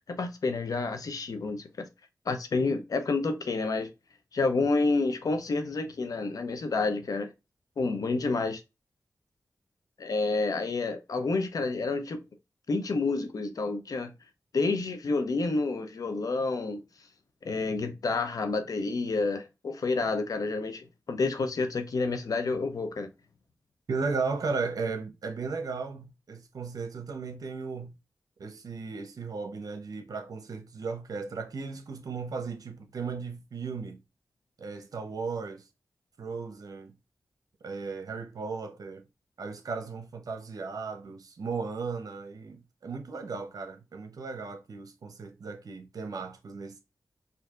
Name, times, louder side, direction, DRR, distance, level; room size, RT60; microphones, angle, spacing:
voice 1, 0.1-1.7 2.3-3.9 4.3-7.3 7.8-8.6 10.0-12.2 12.7-14.1 14.5-16.8 17.4-23.1, left 3 dB, 70° left, 0.6 m, -29 dB
voice 2, 23.9-27.9 28.4-34.0 34.6-35.6 36.2-36.9 37.6-39.0 39.4-46.8, right 4 dB, 75° right, 0.7 m, -36 dB
4.4 x 2.6 x 2.4 m
cardioid pair, 55°, 6 cm